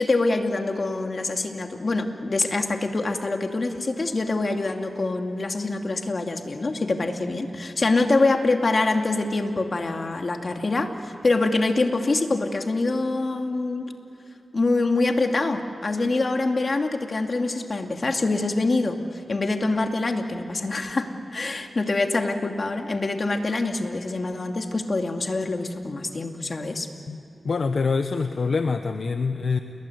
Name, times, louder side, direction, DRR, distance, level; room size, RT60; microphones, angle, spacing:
voice 1, 0.0-13.9 14.5-26.9, left 3 dB, 55° left, 4 dB, 2.4 m, -25 dB
voice 2, 27.1-29.6, left 4 dB, 70° left, 7 dB, 1.0 m, -25 dB
29.5 x 21.5 x 8.0 m, 2.9 s
cardioid pair, 60°, 0 cm